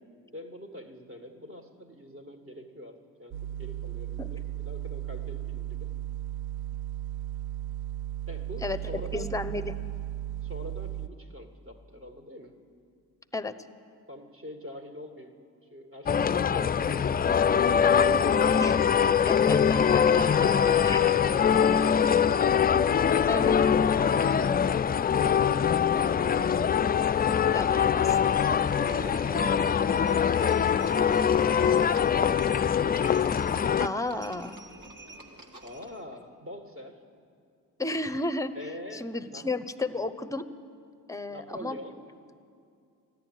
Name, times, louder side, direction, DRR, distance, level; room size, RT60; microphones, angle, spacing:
voice 1, 0.3-5.9 8.3-9.3 10.4-12.6 14.1-15.3 15.7-17.7 35.6-37.0 38.5-39.5 41.3-42.0, left 1 dB, 35° right, 4 dB, 1.9 m, -44 dB
sound 1, 3.3-11.1, right 12 dB, 65° right, 0.7 m, -35 dB
voice 2, 9.1-9.8 13.3-13.5 18.6-18.7 19.3-20.5 20.8-21.0 23.3-23.6 27.5-28.2 33.8-34.6 37.8-38.5 38.9-40.5 41.1-41.8, left 2 dB, 10° left, 12 dB, 0.7 m, -32 dB
sound 2, 16.1-33.9, left 7 dB, 25° left, 0.3 m, -23 dB
Livestock farm animals working animals, 27.9-36.0, right 2 dB, 50° right, 2.0 m, -49 dB
14.0 x 11.0 x 9.2 m, 2.4 s
supercardioid pair, 60°, 39 cm